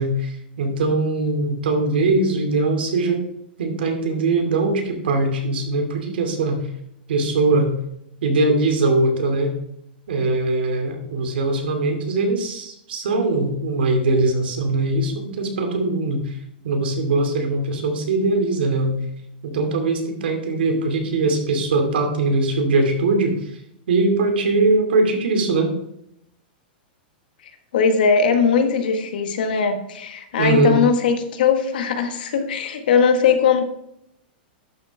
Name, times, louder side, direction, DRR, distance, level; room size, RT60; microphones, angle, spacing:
voice 1, 0.0-3.2 3.6-6.6 7.1-7.7 8.2-9.5 10.1-16.3 16.6-19.0 19.4-23.4 23.9-25.7 30.4-30.8, right 2 dB, 85° right, 4 dB, 2.6 m, -21 dB
voice 2, 27.7-33.6, left 6 dB, 65° left, 6 dB, 1.5 m, -19 dB
11.5 x 7.2 x 3.5 m, 0.78 s
supercardioid pair, 180°, 5 cm